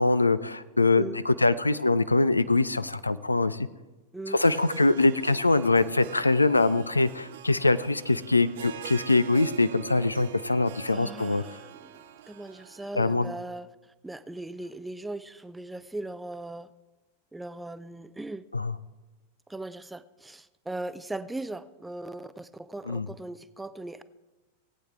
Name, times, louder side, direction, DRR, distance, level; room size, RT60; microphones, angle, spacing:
voice 1, 0.0-3.7 4.3-11.4 13.0-13.3 18.5-18.7 22.9-23.1, left 3 dB, 80° left, 0.4 m, -23 dB
Harp, 4.3-13.3, right 11 dB, 55° right, 0.7 m, -43 dB
voice 2, 10.9-16.7 17.3-18.5 19.5-24.0, right 2 dB, 5° right, 0.5 m, -39 dB
18.5 x 8.7 x 3.6 m
figure-of-eight pair, 90°, 0 cm